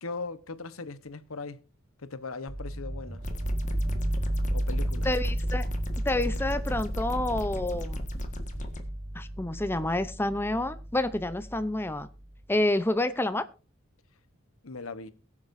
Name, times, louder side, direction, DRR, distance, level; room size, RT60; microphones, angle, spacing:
voice 1, 0.0-1.6 2.0-3.2 4.5-5.1 14.6-15.1, left 3 dB, 85° left, 1.0 m, -39 dB
sound 1, 2.5-12.3, right 1 dB, 65° right, 4.0 m, -33 dB
sound 2, 3.2-8.8, left 1 dB, 35° left, 1.6 m, -38 dB
voice 2, 5.0-5.7 6.0-8.0 9.1-12.1 12.5-13.4, left 1 dB, 10° left, 0.6 m, -28 dB
21.5 x 7.3 x 2.6 m
head